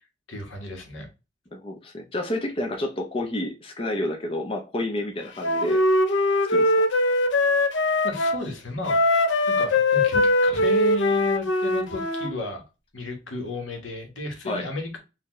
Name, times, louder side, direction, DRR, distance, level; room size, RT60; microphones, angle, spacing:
voice 1, 0.3-1.1 8.0-9.0 9.5-12.6 12.9-15.0, left 1 dB, 90° left, 1.4 m, -33 dB
voice 2, 1.5-5.8 6.5-6.8 14.5-14.6, left 1 dB, 30° left, 0.6 m, -30 dB
Wind instrument woodwind instrument, 5.4-8.4 8.9-12.3, left 2 dB, 75° left, 0.5 m, -21 dB
4.4 x 2.7 x 3.0 m
head